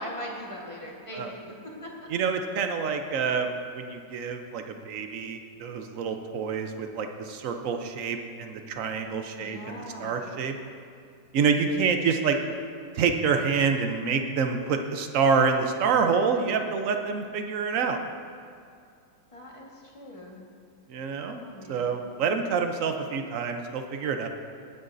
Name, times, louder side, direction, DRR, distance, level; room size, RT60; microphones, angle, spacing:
voice 1, 0.0-1.9 9.4-10.3 11.6-11.9 19.3-20.5 21.4-22.0, equal, 20° left, -3 dB, 1.3 m, -41 dB
voice 2, 2.1-10.5 11.3-12.4 12.9-18.0 20.9-21.4 21.7-24.3, right 5 dB, 65° right, 5 dB, 0.8 m, -27 dB
18.0 x 9.5 x 2.6 m, 2.3 s
omnidirectional pair, 2.1 m